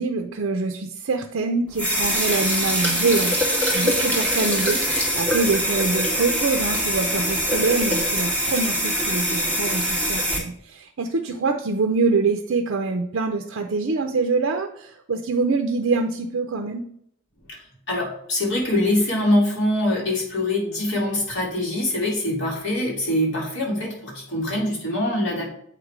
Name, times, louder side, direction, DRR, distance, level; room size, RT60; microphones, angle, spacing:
voice 1, 0.0-3.4 3.7-4.8 5.1-16.8, right 4 dB, 65° right, 5 dB, 0.5 m, -25 dB
sound 1, 1.7-10.4, equal, 5° left, 1.8 m, -23 dB
voice 2, 17.5-25.5, left 1 dB, 60° left, -4 dB, 2.6 m, -24 dB
8.0 x 3.3 x 4.9 m, 0.68 s
head